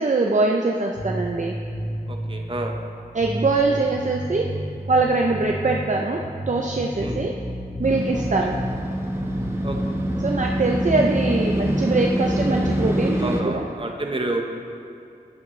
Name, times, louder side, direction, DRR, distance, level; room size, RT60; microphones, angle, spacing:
voice 1, 0.0-1.6 3.1-4.6 4.9-7.4 7.8-8.6 10.2-13.6, right 3 dB, 50° right, 1 dB, 0.5 m, -23 dB
sound 1, 1.0-2.8 3.2-5.8 6.2-8.8 9.2-11.8 12.2-12.9, equal, 85° left, 2.1 m, -31 dB
voice 2, 2.1-2.7 7.0-7.2 9.6-9.8 13.2-14.4, right 2 dB, 35° right, 2 dB, 1.0 m, -29 dB
Motorcycle, 7.8-13.4, right 1 dB, 15° right, 1.0 m, -25 dB
9.8 x 8.5 x 3.2 m, 2.5 s
wide cardioid pair, 55°, 16 cm